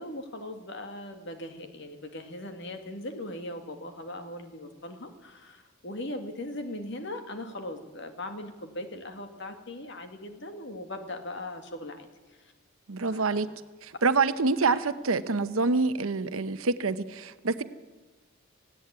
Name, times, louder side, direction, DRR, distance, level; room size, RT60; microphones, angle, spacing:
voice 1, 0.0-12.1 12.4-12.5 13.1-13.5 14.6-14.8, left 1 dB, 55° left, 6 dB, 2.2 m, -39 dB
voice 2, 12.9-13.5 13.8-17.6, right 4 dB, 80° right, 11 dB, 0.9 m, -26 dB
18.0 x 16.0 x 9.7 m, 1.2 s
head